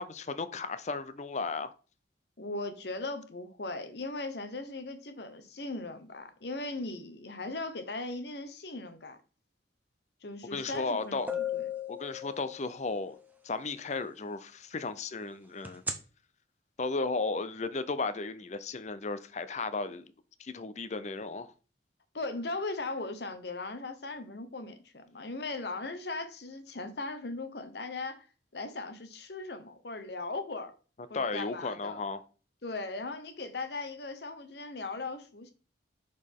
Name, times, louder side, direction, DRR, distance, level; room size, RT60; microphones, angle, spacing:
voice 1, 0.0-1.7 10.5-11.3 11.9-13.2 13.4-15.8 16.8-20.1 20.4-21.5 31.1-32.2, left 3 dB, 40° left, 0.5 m, -34 dB
voice 2, 2.4-9.2 10.2-11.7 22.1-28.2 28.5-30.7 31.1-32.0 32.6-35.5, left 2 dB, 60° left, 1.0 m, -38 dB
sound 1, 10.8-10.9 11.3-13.0 15.7-15.9, left 5 dB, 10° right, 0.7 m, -35 dB
6.2 x 5.1 x 3.6 m
head